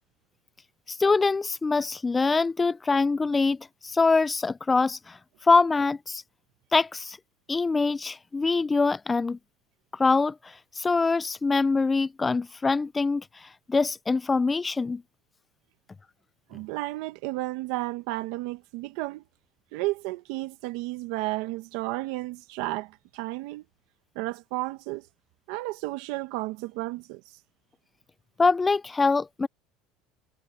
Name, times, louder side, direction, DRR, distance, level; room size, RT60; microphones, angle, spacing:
voice 1, 0.9-3.6 3.8-5.2 5.4-6.2 6.7-7.2 7.5-9.4 9.9-15.0 28.4-29.5, left 4 dB, 20° left, 0.4 m, -24 dB
voice 2, 16.5-19.2 19.7-23.6 24.1-25.1 25.5-27.4, right 20 dB, 75° right, 1.3 m, -32 dB
supercardioid pair, 110°, 0 cm